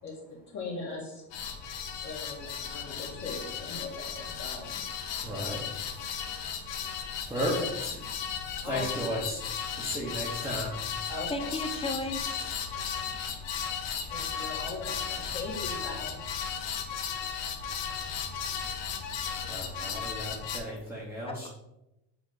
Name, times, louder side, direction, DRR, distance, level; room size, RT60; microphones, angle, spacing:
voice 1, 0.0-1.2 2.0-4.8 8.6-8.9 11.1-11.5 14.1-16.2, left 3 dB, 40° left, -5 dB, 2.0 m, -39 dB
sound 1, 1.3-20.6, left 7 dB, 85° left, 1.1 m, -35 dB
voice 2, 5.2-6.6 7.1-9.5 9.7-10.8 12.7-13.4 14.3-14.6 18.9-21.5, equal, 5° right, -5 dB, 0.9 m, -36 dB
voice 3, 11.3-12.5 21.3-21.5, left 2 dB, 15° left, 5 dB, 0.4 m, -34 dB
8.0 x 4.0 x 3.9 m, 0.90 s
cardioid pair, 170°, 42 cm